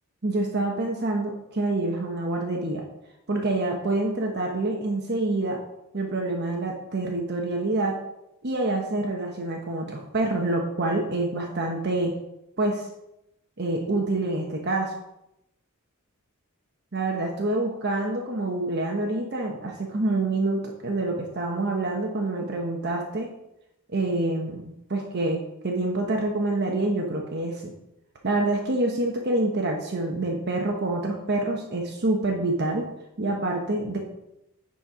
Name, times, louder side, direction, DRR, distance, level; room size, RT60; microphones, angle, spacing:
voice 1, 0.2-2.8 3.3-5.6 5.9-8.0 8.4-12.1 12.6-12.9 13.6-14.9 16.9-23.3 23.9-27.7 28.2-32.9 33.2-34.0, right 2 dB, 50° right, 1 dB, 1.1 m, -27 dB
9.8 x 4.4 x 4.9 m, 0.84 s
head